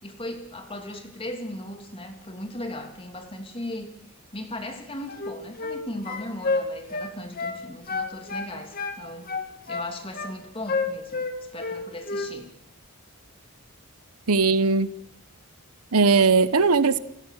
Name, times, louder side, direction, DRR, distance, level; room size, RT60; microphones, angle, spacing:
voice 1, 0.0-3.9 4.3-9.3 9.7-11.2 11.5-12.5, left 1 dB, 25° left, 2.8 m, -37 dB
sound 1, 5.1-5.8 6.0-7.6 7.9-9.0 9.3-10.3 10.7-11.8 12.1-12.3, left 4 dB, 40° left, 2.3 m, -29 dB
voice 2, 14.3-14.9 15.9-17.0, right 4 dB, 80° right, 1.0 m, -19 dB
29.0 x 17.0 x 6.6 m
head